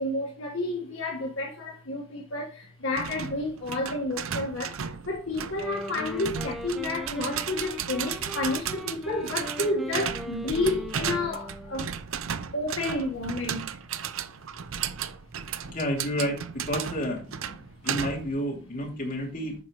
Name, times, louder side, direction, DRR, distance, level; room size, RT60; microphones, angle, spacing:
voice 1, 0.0-11.9 12.5-13.7, left 2 dB, 70° left, 1.7 m, -30 dB
sound 1, 3.0-18.4, right 8 dB, 70° right, 0.6 m, -35 dB
Wind instrument woodwind instrument, 5.5-12.0, left 1 dB, ahead, 0.5 m, -40 dB
voice 2, 15.7-17.2 17.8-19.6, equal, 40° left, 2.9 m, -30 dB
9.4 x 5.9 x 3.2 m
head